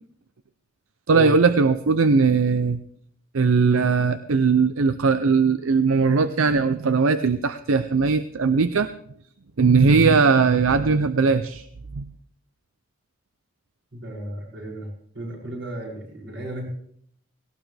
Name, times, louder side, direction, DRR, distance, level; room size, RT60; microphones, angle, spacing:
voice 1, 1.1-2.8 3.3-8.9 9.6-11.7 11.9-12.1, right 4 dB, 80° right, 11 dB, 0.6 m, -19 dB
voice 2, 13.9-14.9 15.1-16.7, right 1 dB, 60° right, -2 dB, 6.8 m, -34 dB
18.5 x 18.0 x 3.4 m, 0.65 s
head